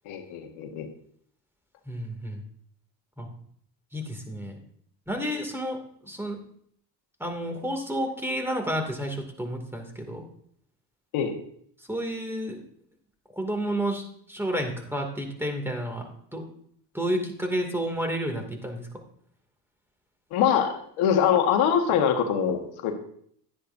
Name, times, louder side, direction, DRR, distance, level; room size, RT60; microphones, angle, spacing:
voice 1, 0.0-0.9 11.1-11.3 20.3-22.9, left 8 dB, 80° left, 4 dB, 1.7 m, -24 dB
voice 2, 1.9-2.4 3.2-3.3 3.9-4.5 5.1-6.4 7.2-10.2 11.9-12.6 13.4-16.4 16.9-18.9, equal, 5° right, 4 dB, 2.4 m, -31 dB
11.0 x 9.9 x 2.7 m, 0.64 s
supercardioid pair, 80°, 48 cm